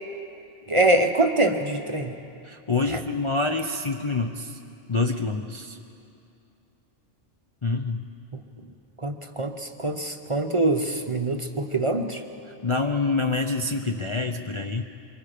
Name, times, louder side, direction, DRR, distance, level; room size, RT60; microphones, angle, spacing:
voice 1, 0.7-2.1 9.0-12.2, right 2 dB, 30° right, 5 dB, 0.8 m, -24 dB
voice 2, 2.5-4.5 4.9-5.8 7.6-8.0 12.6-14.8, left 3 dB, 35° left, 3 dB, 0.6 m, -26 dB
25.0 x 23.0 x 5.0 m, 2.7 s
omnidirectional pair, 1.2 m